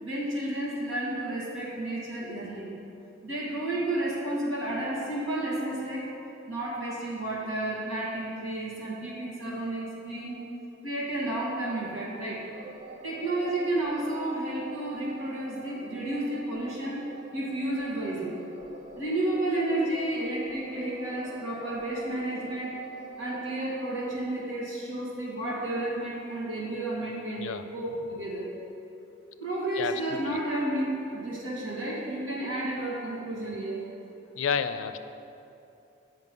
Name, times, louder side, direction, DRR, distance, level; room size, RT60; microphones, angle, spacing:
voice 1, 0.0-2.7 3.2-6.1 6.5-10.4 10.8-12.5 13.0-17.0 17.3-18.4 19.0-22.8 23.2-28.5 29.4-33.8, right 1 dB, 90° right, -5 dB, 2.0 m, -31 dB
sound 1, 12.5-24.3, right 3 dB, 35° right, 0.4 m, -44 dB
voice 2, 29.8-30.2 34.4-35.0, left 6 dB, 90° left, 10 dB, 0.4 m, -30 dB
8.2 x 5.4 x 5.4 m, 2.8 s
head